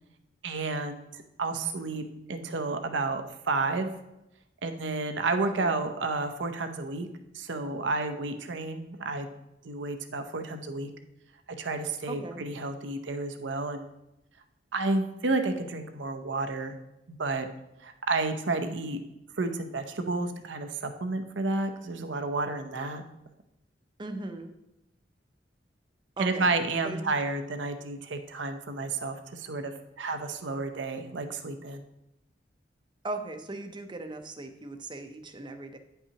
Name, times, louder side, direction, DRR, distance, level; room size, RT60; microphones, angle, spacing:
voice 1, 0.4-3.9 4.6-7.1 7.3-9.3 9.6-10.9 11.5-13.9 14.7-16.8 17.2-17.5 17.8-19.0 19.4-23.0 26.2-31.8, right 3 dB, 75° right, 7 dB, 0.7 m, -31 dB
voice 2, 5.5-5.8 12.1-12.4 24.0-24.5 26.2-26.6 26.8-27.2 33.0-35.8, right 2 dB, 25° right, 7 dB, 0.6 m, -38 dB
9.6 x 5.6 x 2.9 m, 0.90 s
head